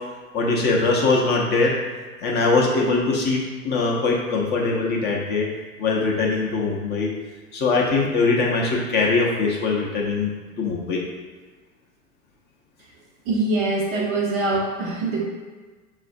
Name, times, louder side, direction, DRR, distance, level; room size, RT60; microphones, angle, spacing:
voice 1, 0.3-1.8 2.2-5.5 5.8-7.1 7.5-10.3 10.6-11.0, left 3 dB, 25° left, -2 dB, 0.5 m, -21 dB
voice 2, 13.3-15.2, right 2 dB, 30° right, -1 dB, 0.4 m, -23 dB
5.9 x 2.4 x 2.5 m, 1.4 s
hypercardioid pair, 95°, 45 cm